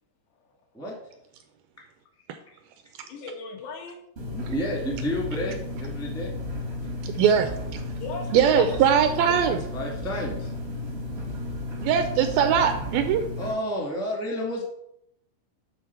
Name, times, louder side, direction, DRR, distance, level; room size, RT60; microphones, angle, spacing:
voice 1, 3.0-4.0 8.0-9.4, left 4 dB, 85° left, 1 dB, 3.6 m, -38 dB
sound 1, 4.2-13.5, left 2 dB, 65° right, 0.6 m, -33 dB
voice 2, 4.3-6.4 9.7-10.5 13.4-14.6, equal, 5° left, -2 dB, 0.6 m, -30 dB
voice 3, 7.0-7.5 8.3-9.6 11.8-13.2, right 8 dB, 80° right, 7 dB, 2.2 m, -21 dB
9.5 x 3.9 x 5.8 m, 0.76 s
omnidirectional pair, 4.6 m